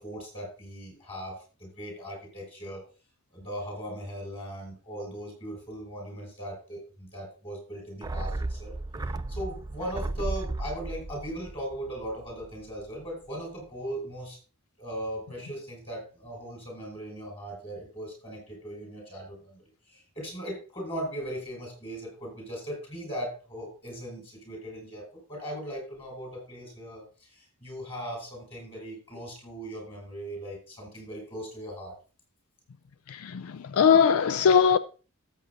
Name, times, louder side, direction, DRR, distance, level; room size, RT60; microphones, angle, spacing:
voice 1, 0.0-2.8 3.3-8.7 9.3-14.4 14.8-19.6 19.9-31.9, equal, 25° left, 6.6 m, -38 dB
sound 1, 8.0-12.6 12.9-13.0, right 2 dB, 15° right, 0.4 m, -34 dB
voice 2, 33.1-34.8, left 6 dB, 70° left, 0.4 m, -21 dB
14.0 x 8.2 x 2.7 m
head